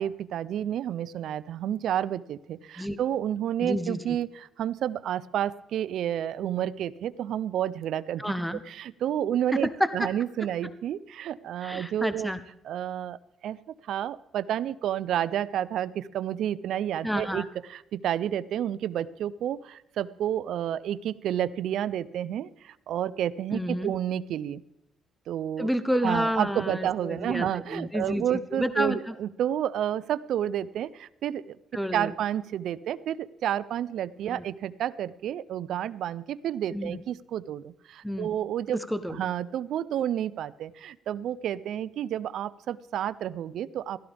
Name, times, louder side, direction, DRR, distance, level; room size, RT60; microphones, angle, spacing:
voice 1, 0.0-2.4 3.0-4.3 4.6-8.2 8.7-9.7 9.9-12.3 12.7-13.2 13.4-13.6 13.9-17.5 18.0-19.6 20.0-22.5 22.9-24.6 25.3-25.7 26.0-30.9 31.2-31.4 31.9-33.2 33.4-37.6 38.2-38.8 39.1-44.0, right 10 dB, 75° right, 17 dB, 0.5 m, -30 dB
voice 2, 3.6-4.0 8.2-8.6 9.5-10.1 11.6-12.4 17.0-17.5 23.5-24.0 25.6-29.1 31.7-32.1 34.3-34.4 36.7-37.0 38.0-38.3 38.7-39.2, equal, ahead, 12 dB, 0.8 m, -30 dB
16.0 x 13.0 x 3.4 m, 0.88 s
cardioid pair, 90°, 0 cm